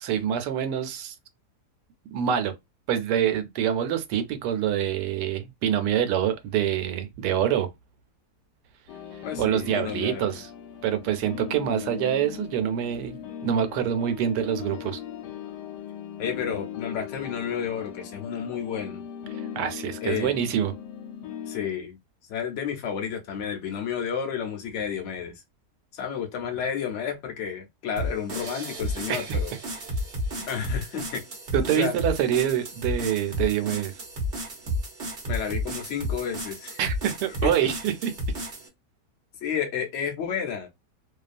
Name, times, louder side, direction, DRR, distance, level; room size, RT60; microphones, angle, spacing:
voice 1, 0.0-1.1 2.1-2.5 2.9-7.7 9.1-10.5 10.8-13.2 13.4-15.0 19.5-20.7 29.1-29.4 30.4-30.5 31.5-33.9 36.8-38.1, right 9 dB, 85° right, 1.2 m, -26 dB
sound 1, 8.9-21.7, left 9 dB, 90° left, 1.2 m, -39 dB
voice 2, 9.2-10.3 16.2-19.0 20.0-20.4 21.5-22.0 22.3-25.3 25.9-29.5 30.5-31.2 31.7-31.9 35.3-36.8 37.4-37.5 39.4-40.7, left 7 dB, 55° left, 0.9 m, -31 dB
sound 2, 28.0-38.7, equal, 45° right, 0.8 m, -32 dB
2.7 x 2.3 x 2.4 m
omnidirectional pair, 1.7 m